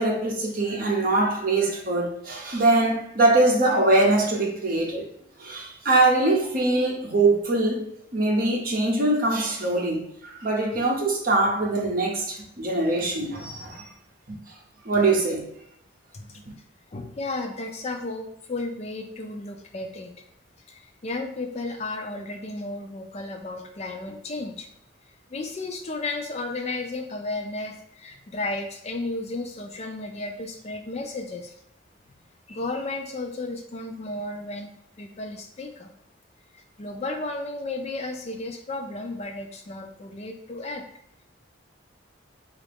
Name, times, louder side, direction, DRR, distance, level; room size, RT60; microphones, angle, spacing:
voice 1, 0.0-5.1 5.4-13.9 14.3-14.4 14.8-15.5, right 2 dB, 45° right, 0.8 m, -23 dB
voice 2, 16.9-20.1 20.7-24.7 25.1-31.5 32.5-34.7 35.0-35.9 36.5-40.8, left 2 dB, 30° left, 0.4 m, -33 dB
4.1 x 2.5 x 3.4 m
head